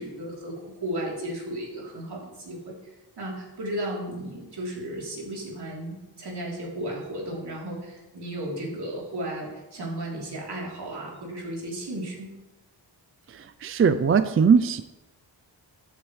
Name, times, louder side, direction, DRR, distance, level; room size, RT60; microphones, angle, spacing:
voice 1, 0.0-2.7 3.2-12.3, right 1 dB, 65° right, -3 dB, 3.5 m, -34 dB
voice 2, 13.6-14.8, right 6 dB, 35° right, 12 dB, 0.4 m, -19 dB
13.0 x 8.9 x 3.2 m, 1.1 s
wide cardioid pair, 105°, 43 cm